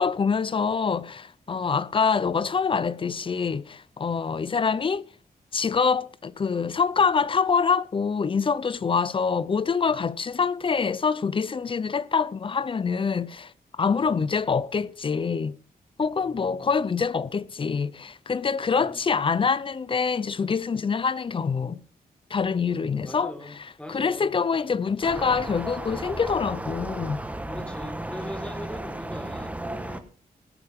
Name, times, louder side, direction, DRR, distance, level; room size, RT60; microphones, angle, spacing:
voice 1, 0.0-5.1 5.5-15.6 16.0-21.8 22.3-23.3 23.9-27.2, left 5 dB, 35° left, 0.5 m, -25 dB
voice 2, 14.0-14.4 16.2-16.8 18.8-19.1 22.7-24.3 27.5-30.1, equal, 5° left, 2.1 m, -41 dB
sound 1, 25.0-30.0, right 1 dB, 10° right, 1.2 m, -34 dB
18.0 x 12.5 x 3.6 m
wide cardioid pair, 140°, 16 cm